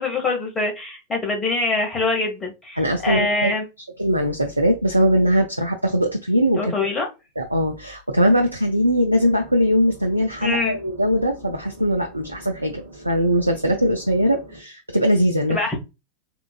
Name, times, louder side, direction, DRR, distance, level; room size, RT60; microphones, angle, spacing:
voice 1, 0.0-3.7 6.6-7.1 10.4-10.8 15.5-15.8, left 3 dB, 20° left, 1.2 m, -24 dB
voice 2, 2.8-3.5 4.0-6.7 7.4-15.6, equal, 85° right, 0.4 m, -20 dB
sound 1, 9.1-14.6, equal, 70° right, 0.9 m, -44 dB
3.6 x 2.5 x 2.2 m
figure-of-eight pair, 90°, 0 cm